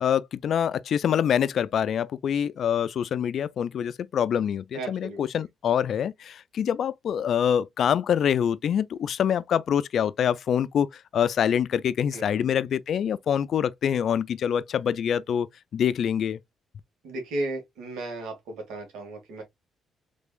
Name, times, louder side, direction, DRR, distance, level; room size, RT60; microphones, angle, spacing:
voice 1, 0.0-15.5 15.7-16.4, left 8 dB, 65° left, 0.3 m, -25 dB
voice 2, 4.7-5.2 12.1-12.3 17.0-19.4, right 2 dB, 90° right, 1.8 m, -34 dB
3.5 x 3.3 x 2.3 m
cardioid pair, 90°, 0 cm